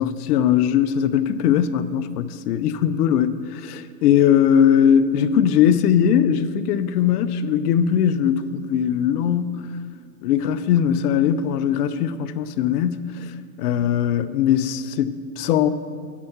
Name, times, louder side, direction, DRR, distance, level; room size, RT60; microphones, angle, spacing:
voice 1, 0.0-9.7 10.2-13.3 13.6-15.7, left 9 dB, 70° left, 13 dB, 0.6 m, -20 dB
8.4 x 4.6 x 7.1 m, 2.1 s
supercardioid pair, 135°, 49 cm